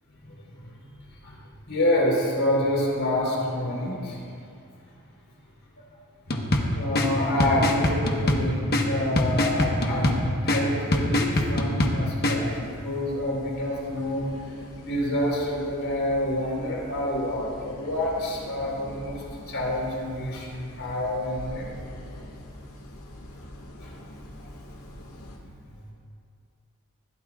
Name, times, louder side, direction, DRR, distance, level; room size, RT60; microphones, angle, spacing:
voice 1, 0.2-0.7 1.2-1.3 1.7-4.4 6.7-10.2 10.4-14.3 14.8-21.7 23.8-23.9 24.4-24.5 25.7-25.9, left 1 dB, 60° left, -3 dB, 4.0 m, -28 dB
sound 1, 6.3-12.4, left 1 dB, 45° left, 1.2 m, -25 dB
sound 2, 12.4-25.4, equal, 80° left, 1.9 m, -44 dB
20.5 x 15.0 x 2.4 m, 2.4 s
head